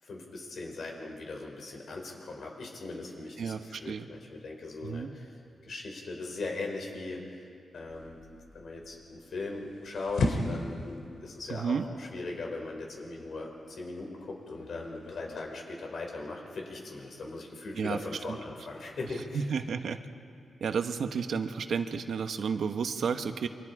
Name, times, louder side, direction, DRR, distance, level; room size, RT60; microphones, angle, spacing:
voice 1, 0.0-5.3 5.6-7.4 7.7-8.2 8.5-19.4, left 3 dB, 70° left, 0 dB, 5.3 m, -39 dB
voice 2, 3.4-4.1 4.8-5.1 11.5-11.9 17.8-18.4 19.5-20.0 20.6-23.5, right 6 dB, 80° right, 7 dB, 1.2 m, -32 dB
sound 1, 7.9-15.4, left 2 dB, 85° left, 2.7 m, -37 dB
29.5 x 24.0 x 4.9 m, 2.3 s
cardioid pair, 95°, 0 cm